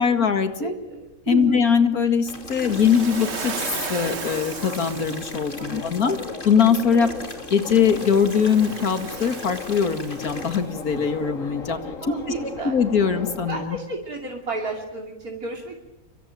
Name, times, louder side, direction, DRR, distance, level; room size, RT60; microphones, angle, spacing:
voice 1, 0.0-0.7 1.3-3.5 3.9-6.2 6.4-7.1 7.5-11.8 12.6-13.8, left 6 dB, 80° left, 8 dB, 2.5 m, -21 dB
voice 2, 0.6-1.6 5.6-6.2 12.0-12.8 13.5-15.8, right 4 dB, 80° right, 0 dB, 3.3 m, -32 dB
Subway metro underground, 2.3-13.6, left 4 dB, 60° left, 2.8 m, -37 dB
sound 1, 2.3-10.6, left 2 dB, 35° left, 3.0 m, -41 dB
Waves surf, 2.6-5.8 7.6-10.6, right 5 dB, 50° right, 1.6 m, -36 dB
25.5 x 24.5 x 8.9 m, 1.0 s
omnidirectional pair, 1.6 m